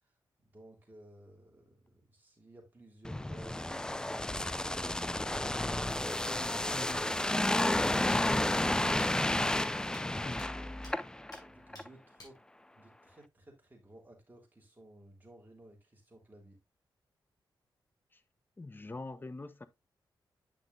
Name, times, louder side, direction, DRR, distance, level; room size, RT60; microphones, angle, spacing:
voice 1, 0.0-6.0 11.4-12.4 12.7-16.6, right 1 dB, 20° right, 3.4 m, -57 dB
sound 1, 3.0-11.4 11.7-11.9, left 1 dB, 10° left, 0.4 m, -31 dB
sound 2, 8.1-8.2 8.6-8.7 9.0-9.1 9.5-9.6 9.9-10.0 10.4-10.5 10.8-10.9 11.3-11.4 11.7-11.9 12.2-12.3, left 2 dB, 45° left, 5.4 m, -51 dB
voice 2, 18.6-19.7, left 2 dB, 25° left, 0.9 m, -43 dB
9.5 x 5.9 x 2.6 m
cardioid pair, 85°, 8 cm